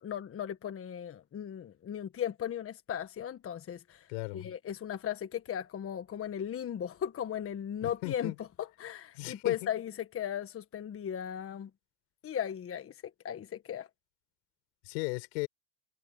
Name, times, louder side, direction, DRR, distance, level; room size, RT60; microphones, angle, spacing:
voice 1, 0.0-4.1 4.3-8.3 8.6-11.7 12.2-12.9 13.2-13.9, left 9 dB, 25° left, 1.4 m, -36 dB
voice 2, 4.1-4.5 7.8-8.3 9.1-9.7 14.8-15.5, left 27 dB, 75° left, 6.8 m, -36 dB
supercardioid pair, 120°, 49 cm